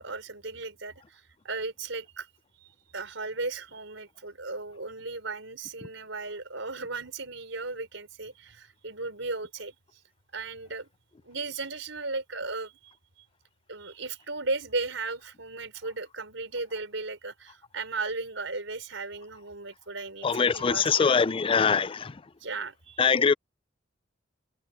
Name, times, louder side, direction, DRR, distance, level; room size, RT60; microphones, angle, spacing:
voice 1, 0.0-2.3 2.6-9.8 10.3-10.9 11.2-12.9 13.7-21.1 22.4-23.2, right 3 dB, 75° right, 5.2 m, -36 dB
voice 2, 20.2-22.1 23.0-23.3, left 5 dB, 30° left, 0.4 m, -23 dB
head